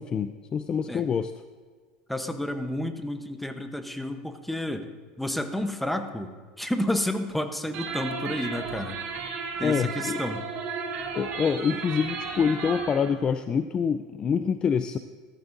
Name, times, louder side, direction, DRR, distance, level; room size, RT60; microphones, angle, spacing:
voice 1, 0.0-1.3 9.6-10.2 11.1-15.0, left 6 dB, 30° left, 10 dB, 0.4 m, -26 dB
voice 2, 2.1-4.9 5.2-9.0 9.6-10.4, left 1 dB, 5° left, 7 dB, 0.9 m, -30 dB
sound 1, 7.7-13.1, right 5 dB, 55° right, 2.5 m, -34 dB
14.5 x 13.5 x 2.7 m, 1.6 s
supercardioid pair, 115°, 3 cm